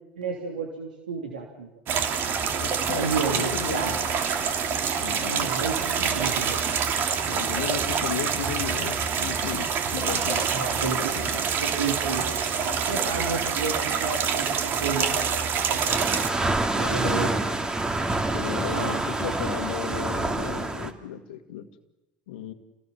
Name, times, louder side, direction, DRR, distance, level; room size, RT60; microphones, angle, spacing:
voice 1, 0.2-1.7 2.9-3.9 5.2-6.6 10.5-16.0 16.8-17.5 18.6-19.0, right 4 dB, 90° right, 2 dB, 3.2 m, -32 dB
sound 1, 1.9-16.3, right 6 dB, 50° right, 3.2 m, -26 dB
voice 2, 2.6-4.0 5.0-5.5 7.3-10.5 10.8-11.1 17.1-17.2 18.3-21.7 22.3-22.5, left 9 dB, 80° left, 7 dB, 1.9 m, -35 dB
sound 2, 15.9-20.9, right 2 dB, 15° right, 2.4 m, -27 dB
29.0 x 18.5 x 7.3 m, 1.0 s
hypercardioid pair, 85°, 5 cm